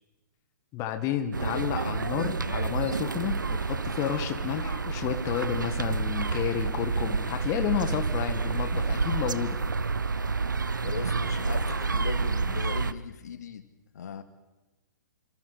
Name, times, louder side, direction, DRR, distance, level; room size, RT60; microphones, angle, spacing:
voice 1, 0.7-9.6, left 10 dB, 30° left, 7 dB, 1.8 m, -31 dB
sound 1, 1.3-12.9, right 4 dB, 80° right, 0.9 m, -29 dB
voice 2, 10.8-13.7 13.9-14.2, left 7 dB, 60° left, 9 dB, 2.2 m, -39 dB
28.5 x 26.0 x 4.3 m, 1.1 s
figure-of-eight pair, 120°, 10 cm